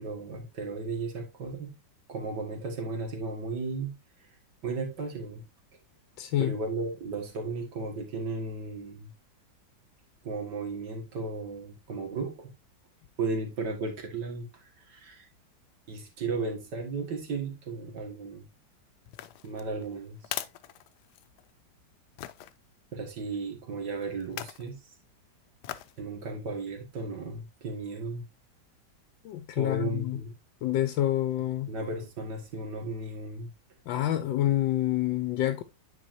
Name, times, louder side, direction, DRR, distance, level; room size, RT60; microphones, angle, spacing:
voice 1, 0.0-1.7 2.1-3.9 4.6-5.4 6.4-9.1 10.2-12.5 13.2-14.5 14.9-15.3 15.9-18.4 19.4-20.2 22.9-24.8 26.0-28.2 29.6-30.3 31.7-33.5, right 3 dB, 65° right, 2.3 m, -35 dB
voice 2, 6.2-6.6 29.2-30.2 30.6-31.7 33.9-35.6, left 13 dB, 90° left, 1.3 m, -27 dB
sound 1, 19.1-21.5 22.2-22.5 24.2-24.7 25.6-26.0 26.5-26.6, left 13 dB, 75° left, 1.0 m, -40 dB
9.6 x 4.8 x 2.6 m
omnidirectional pair, 2.0 m